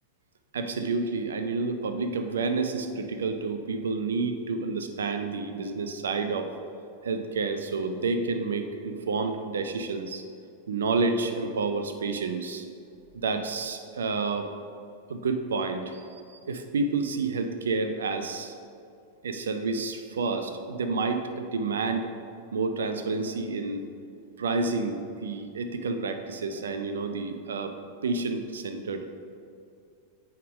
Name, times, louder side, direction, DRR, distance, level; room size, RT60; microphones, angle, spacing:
voice 1, 0.5-6.5 7.0-10.2 10.7-12.7 13.1-14.5 15.1-18.5 19.2-22.1 22.5-23.9 24.4-27.7 28.0-29.1, right 4 dB, 65° right, 8 dB, 0.6 m, -29 dB
8.5 x 3.6 x 6.2 m, 2.4 s
figure-of-eight pair, 90°, 0 cm